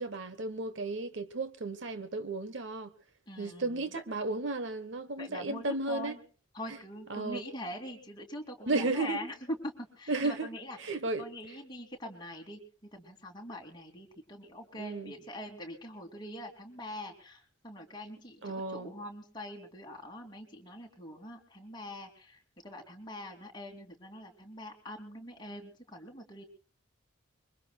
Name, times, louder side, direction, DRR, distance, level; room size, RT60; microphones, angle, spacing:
voice 1, 0.0-2.9 3.4-6.1 7.1-7.4 8.7-9.2 10.1-10.5 10.8-11.2 14.8-15.1 18.4-18.9, right 3 dB, 60° right, 1.2 m, -34 dB
voice 2, 3.3-3.9 5.2-6.2 6.5-12.6 12.9-26.4, left 1 dB, 20° left, 2.8 m, -43 dB
25.0 x 23.0 x 2.4 m
head